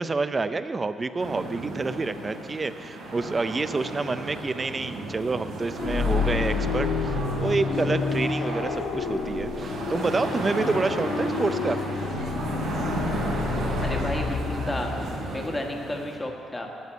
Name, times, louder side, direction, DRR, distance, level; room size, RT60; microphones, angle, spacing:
voice 1, 0.0-11.8, right 3 dB, 30° right, 11 dB, 0.5 m, -28 dB
sound 1, 1.2-16.2, right 2 dB, 90° right, 3.3 m, -35 dB
sound 2, 3.7-15.5, right 3 dB, 75° right, 1.7 m, -40 dB
sound 3, 5.8-15.5, left 4 dB, 75° left, 1.6 m, -29 dB
voice 2, 13.8-14.9 15.3-16.9, left 1 dB, 15° left, 1 dB, 1.5 m, -32 dB
9.4 x 8.0 x 8.4 m, 2.6 s
cardioid pair, 90°, 0 cm